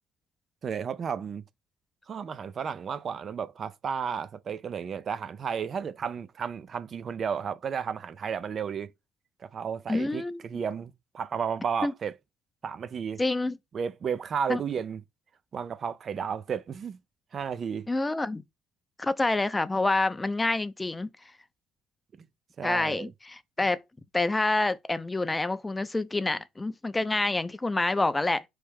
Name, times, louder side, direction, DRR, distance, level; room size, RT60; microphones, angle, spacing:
voice 1, 0.6-1.4 2.1-8.9 9.4-12.1 12.6-13.2 13.7-15.0 15.5-17.0 17.3-17.9 22.2-22.3 22.6-23.1, right 7 dB, 50° right, 0.4 m, -33 dB
voice 2, 9.9-10.4 11.8-11.9 13.2-13.6 14.5-14.6 17.9-18.4 19.0-21.1 22.6-23.8 24.1-28.4, left 2 dB, 15° left, 0.4 m, -27 dB
4.4 x 3.2 x 3.4 m
supercardioid pair, 80°, 0 cm